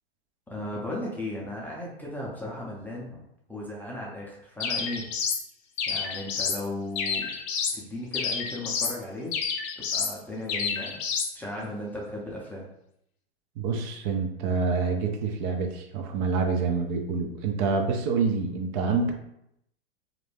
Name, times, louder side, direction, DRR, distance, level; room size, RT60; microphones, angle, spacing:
voice 1, 0.5-3.2 3.5-5.1 5.9-7.3 7.7-9.4 9.8-11.0 11.3-12.7, left 1 dB, 5° left, -4 dB, 0.5 m, -36 dB
sound 1, 4.6-5.4 5.8-6.6 7.0-7.8 8.1-9.0 9.3-10.2 10.5-11.3, left 6 dB, 50° left, 0.6 m, -29 dB
voice 2, 13.6-19.1, right 4 dB, 45° right, 4 dB, 0.5 m, -27 dB
2.5 x 2.1 x 3.2 m, 0.78 s
hypercardioid pair, 115°, 31 cm